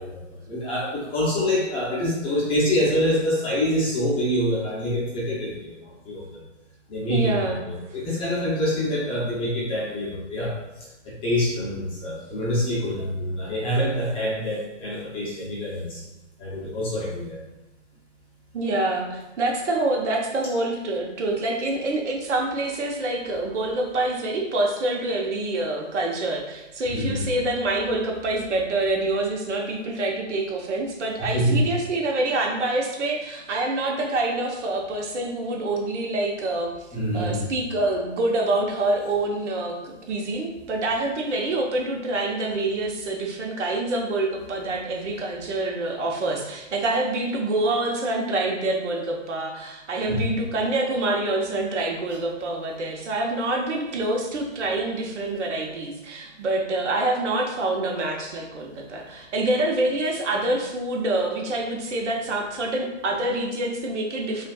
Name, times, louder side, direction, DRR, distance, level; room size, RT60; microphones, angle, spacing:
voice 1, 0.0-5.7 6.1-6.4 6.9-10.5 11.0-16.0 16.4-17.4 26.9-27.2 31.2-31.6 36.9-37.5 50.1-50.3, equal, 15° left, -6 dB, 0.7 m, -26 dB
voice 2, 7.1-7.6 18.5-36.7 37.1-64.5, right 2 dB, 70° right, 0 dB, 1.1 m, -26 dB
5.5 x 2.5 x 2.3 m, 0.99 s
hypercardioid pair, 145°, 37 cm